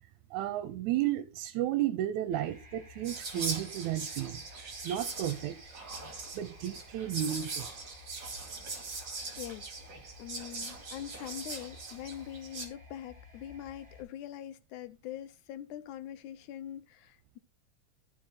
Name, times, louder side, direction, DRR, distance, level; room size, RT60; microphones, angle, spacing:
voice 1, 0.3-4.4 4.8-5.6 6.3-7.7, right 12 dB, 75° right, 2.1 m, -33 dB
sound 1, 2.3-14.0, left 1 dB, 15° right, 7.5 m, -54 dB
Whispering, 3.0-12.7, right 3 dB, 40° right, 3.0 m, -41 dB
voice 2, 9.4-9.7 10.2-17.4, left 11 dB, 80° left, 2.1 m, -43 dB
15.0 x 5.0 x 4.2 m
omnidirectional pair, 3.5 m